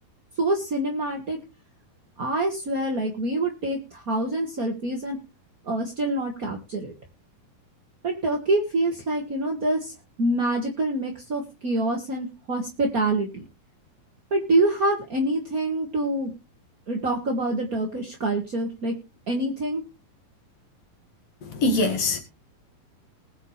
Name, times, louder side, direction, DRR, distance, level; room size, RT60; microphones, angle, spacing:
voice 1, 0.4-1.4 2.2-5.2 5.7-6.9 8.0-9.9 10.2-13.4 14.3-16.3 16.9-18.9 19.3-19.8, right 2 dB, 40° right, 1.4 m, -26 dB
voice 2, 21.4-22.2, left 2 dB, 50° left, 2.5 m, -23 dB
21.0 x 7.4 x 3.3 m
omnidirectional pair, 4.2 m